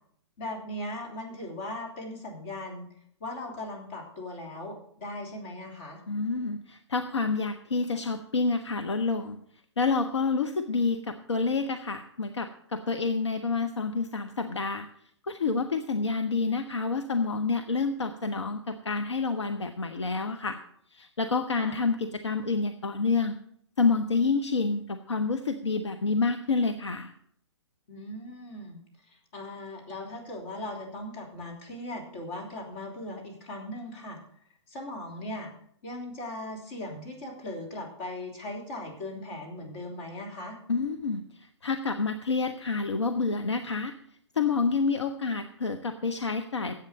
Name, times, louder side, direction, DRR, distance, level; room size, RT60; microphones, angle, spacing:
voice 1, 0.4-2.9 3.2-6.0 21.6-21.8 27.9-28.8 29.1-34.2 34.7-35.5 35.8-40.6, left 1 dB, 40° left, 0 dB, 3.2 m, -38 dB
voice 2, 6.1-9.4 9.8-14.9 15.2-20.6 20.9-23.4 23.8-27.1 40.7-41.2 41.6-43.9 44.4-46.7, left 4 dB, 70° left, 7 dB, 0.8 m, -28 dB
10.5 x 8.1 x 6.4 m, 0.67 s
figure-of-eight pair, 120°, 15 cm